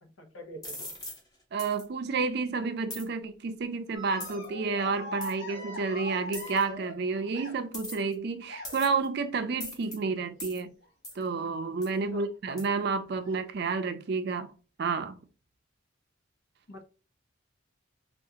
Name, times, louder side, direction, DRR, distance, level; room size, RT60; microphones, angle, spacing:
voice 1, 0.0-0.9 12.1-12.3 16.7-16.8, equal, 90° left, 0.8 m, -45 dB
sound 1, 0.6-1.2 1.6-1.8 2.9-3.1 4.2-4.4 5.2-5.3 6.3-6.6 7.7-8.1 8.6-9.0 9.6-10.0 10.4-10.6 11.0-11.2 11.8-11.9 12.6-12.7, left 1 dB, 20° left, 0.8 m, -40 dB
voice 2, 1.5-10.7 11.2-14.5 14.8-15.2, right 4 dB, 55° right, 0.4 m, -30 dB
sound 2, 3.9-7.9 8.5-9.0 10.0-10.4 10.8-10.9 12.2-12.3 13.1-13.3, left 1 dB, 70° left, 1.5 m, -41 dB
3.6 x 2.4 x 2.8 m
head